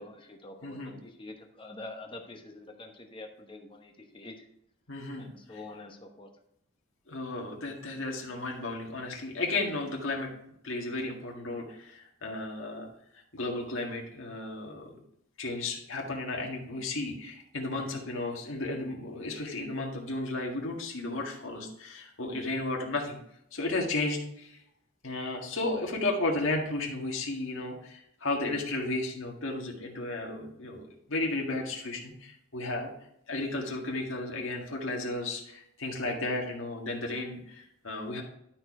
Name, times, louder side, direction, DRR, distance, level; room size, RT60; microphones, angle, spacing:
voice 1, 0.0-4.5 5.2-6.3, left 2 dB, 25° left, 4 dB, 1.0 m, -46 dB
voice 2, 0.6-0.9 4.9-5.6 7.1-10.3 10.6-12.9 13.3-15.0 15.4-23.2 23.5-24.6 25.0-32.9 33.3-38.2, left 2 dB, 70° left, 0 dB, 1.9 m, -34 dB
12.0 x 4.5 x 4.8 m, 0.75 s
head